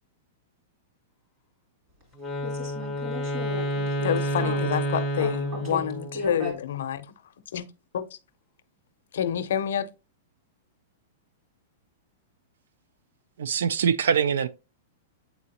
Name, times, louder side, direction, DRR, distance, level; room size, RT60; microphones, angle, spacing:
Wind instrument woodwind instrument, 2.2-6.3, right 1 dB, 5° left, 0.8 m, -29 dB
voice 1, 2.4-4.7 5.2-5.8 6.1-6.6, left 2 dB, 25° right, 2.7 m, -35 dB
voice 2, 4.0-7.1 7.5-7.7 7.9-8.2 9.1-9.9, left 9 dB, 65° left, 0.6 m, -28 dB
voice 3, 13.4-14.5, right 7 dB, 85° right, 0.4 m, -23 dB
8.4 x 3.9 x 2.9 m
supercardioid pair, 180°, 0 cm